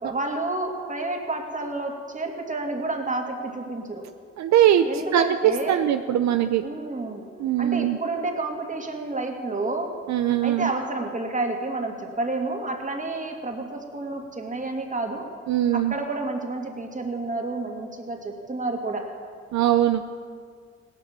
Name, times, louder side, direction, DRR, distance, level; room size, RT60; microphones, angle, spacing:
voice 1, 0.0-4.1 4.9-5.9 6.6-10.0 10.4-15.3 15.7-19.1, right 2 dB, 25° right, 2 dB, 2.5 m, -30 dB
voice 2, 4.4-6.6 7.4-8.0 10.1-10.7 15.5-15.9 19.5-20.0, right 11 dB, 70° right, 9 dB, 0.6 m, -21 dB
17.5 x 11.0 x 7.5 m, 2.1 s
cardioid pair, 90°, 29 cm